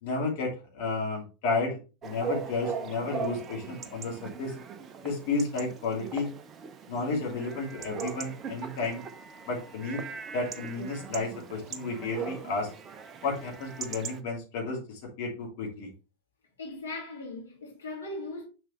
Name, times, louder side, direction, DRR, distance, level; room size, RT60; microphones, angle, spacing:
voice 1, 0.0-4.5 5.0-6.3 6.9-9.0 9.5-10.0 10.3-12.7 13.2-15.9, left 3 dB, 50° left, 2.6 m, -32 dB
Chatter / Bark / Livestock farm animals working animals, 2.0-14.2, right 6 dB, 25° right, 0.8 m, -40 dB
voice 2, 16.6-18.5, left 2 dB, 70° left, 2.6 m, -38 dB
7.0 x 6.1 x 3.2 m
figure-of-eight pair, 90°, 0 cm